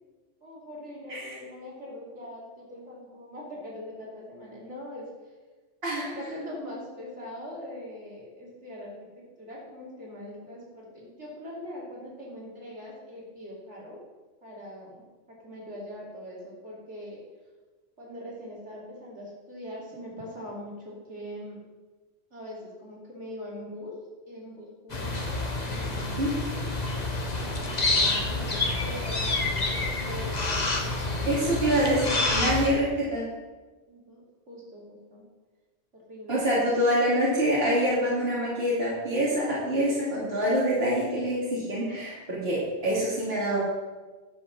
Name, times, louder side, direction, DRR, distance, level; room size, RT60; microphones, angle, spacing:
voice 1, 0.4-5.1 6.0-14.0 14.4-17.2 18.0-21.6 22.3-24.0 24.3-26.4 27.3-32.8 33.9-35.2 35.9-36.4, left 1 dB, 75° right, -5 dB, 3.3 m, -42 dB
sound 1, 24.9-32.7, left 2 dB, 35° left, 1.3 m, -28 dB
voice 2, 31.3-33.2 36.3-43.6, equal, 55° right, -7 dB, 2.8 m, -25 dB
11.0 x 5.6 x 7.0 m, 1.3 s
omnidirectional pair, 1.2 m